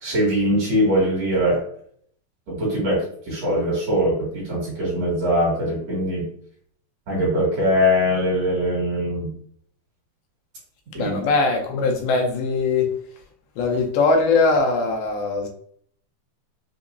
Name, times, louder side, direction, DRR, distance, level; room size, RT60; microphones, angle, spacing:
voice 1, 0.0-1.6 2.5-6.3 7.1-9.3 10.9-11.2, equal, 50° right, -5 dB, 2.6 m, -22 dB
voice 2, 11.0-12.9 13.6-15.5, left 3 dB, 85° left, 2 dB, 2.6 m, -21 dB
6.1 x 2.8 x 2.6 m, 0.63 s
omnidirectional pair, 4.2 m